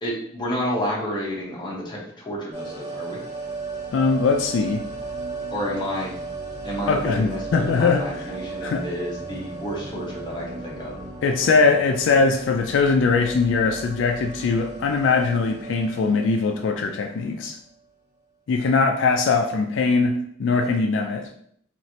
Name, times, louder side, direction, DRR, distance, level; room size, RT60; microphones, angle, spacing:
voice 1, 0.0-3.2 5.5-6.1 6.6-11.0, equal, 25° left, -4 dB, 0.8 m, -30 dB
sound 1, 2.5-17.4 17.7-17.8, right 3 dB, 35° right, 0.8 m, -36 dB
voice 2, 3.9-4.8 6.9-8.0 8.6-8.8 11.2-17.6 18.5-21.3, left 4 dB, 75° left, 4 dB, 0.3 m, -21 dB
3.1 x 2.5 x 2.7 m, 0.66 s
head